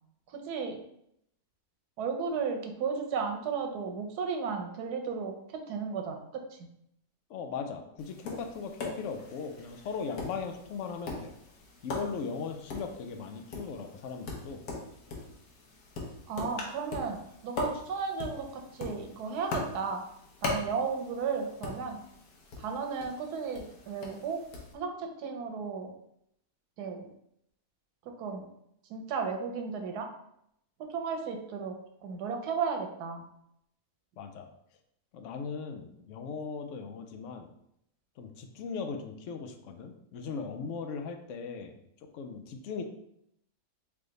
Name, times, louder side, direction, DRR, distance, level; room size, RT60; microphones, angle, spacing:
voice 1, 0.3-0.8 2.0-6.7 16.3-20.0 20.4-22.0 22.6-24.4 24.7-25.9 26.8-27.1 28.1-28.4 28.9-30.1 30.8-33.3, right 5 dB, 85° right, 4 dB, 1.2 m, -34 dB
voice 2, 7.3-11.3 11.8-14.6 34.2-34.5 35.1-37.5 38.2-41.8 42.1-42.8, left 5 dB, 65° left, 5 dB, 0.8 m, -38 dB
Tap, 8.0-24.7, left 3 dB, 85° left, 1.4 m, -41 dB
3.4 x 3.4 x 3.9 m, 0.75 s
omnidirectional pair, 1.6 m